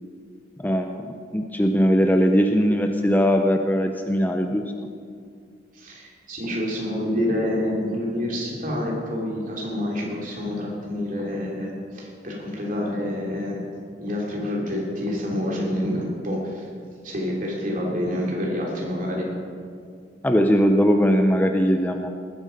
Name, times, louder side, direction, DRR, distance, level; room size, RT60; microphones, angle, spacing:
voice 1, 0.6-1.1 1.3-4.6 20.2-22.1, equal, 10° left, 5 dB, 0.5 m, -20 dB
voice 2, 5.7-13.6 14.0-16.7 17.0-19.3, left 1 dB, 45° right, -2 dB, 2.8 m, -27 dB
19.5 x 8.0 x 5.2 m, 2.3 s
head